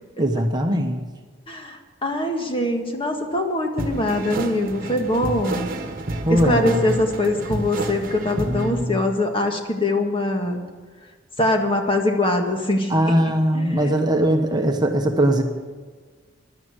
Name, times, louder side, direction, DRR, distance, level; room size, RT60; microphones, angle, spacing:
voice 1, 0.2-1.0 6.2-6.9 8.4-9.0 12.9-15.4, right 1 dB, 20° right, 4 dB, 1.1 m, -21 dB
voice 2, 1.5-5.7 6.3-10.6 11.4-13.1 13.5-13.9, left 1 dB, 30° left, 3 dB, 1.7 m, -23 dB
sound 1, 3.8-8.9, right 2 dB, 50° right, 1.4 m, -30 dB
16.0 x 11.0 x 6.3 m, 1.4 s
head